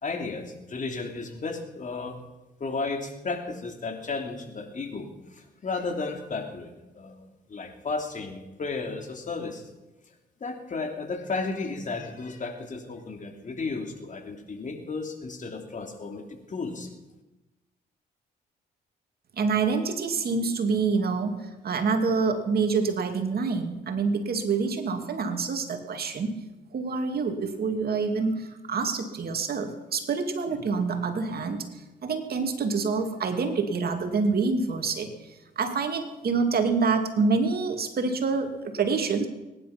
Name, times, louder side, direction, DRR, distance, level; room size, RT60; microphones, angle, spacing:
voice 1, 0.0-2.2 2.6-9.6 10.4-16.9, left 3 dB, 45° left, 4 dB, 3.0 m, -34 dB
voice 2, 19.4-26.4 26.7-31.6 32.0-35.1 35.6-39.3, right 4 dB, 55° right, 6 dB, 2.4 m, -26 dB
22.5 x 11.0 x 5.9 m, 1.0 s
supercardioid pair, 70°, 18 cm